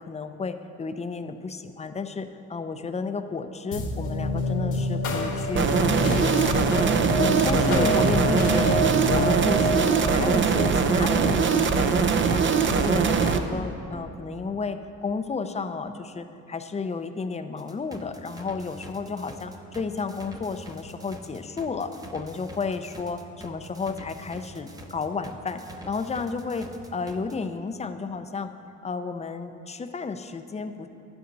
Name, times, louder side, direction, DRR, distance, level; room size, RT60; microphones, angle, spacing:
voice 1, 0.0-6.8 7.2-8.9 9.1-25.6 25.9-26.7 26.9-28.5 28.8-30.9, left 4 dB, 20° left, 9 dB, 0.6 m, -32 dB
sound 1, 3.7-12.4, equal, 85° left, 1.3 m, -28 dB
sound 2, 5.6-13.4, right 5 dB, 40° right, 0.6 m, -22 dB
sound 3, 17.6-27.3, right 1 dB, 10° right, 0.8 m, -44 dB
11.5 x 9.4 x 4.0 m, 2.7 s
cardioid pair, 90°, 30 cm